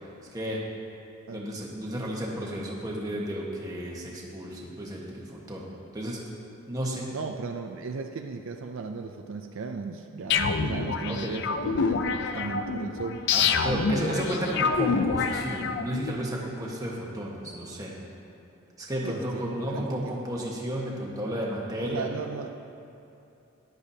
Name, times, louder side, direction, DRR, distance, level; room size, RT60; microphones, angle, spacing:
voice 1, 0.3-0.6 1.3-5.7 5.9-6.2 6.7-7.1 11.1-11.3 12.3-12.5 13.3-17.9 18.8-22.1, equal, 15° right, -4 dB, 1.3 m, -32 dB
voice 2, 7.1-13.2 13.7-14.2 19.0-20.4 21.8-22.5, right 4 dB, 65° right, 5 dB, 0.4 m, -36 dB
sound 1, 10.3-16.1, left 5 dB, 55° left, 0.4 m, -27 dB
13.0 x 10.5 x 2.8 m, 2.8 s
head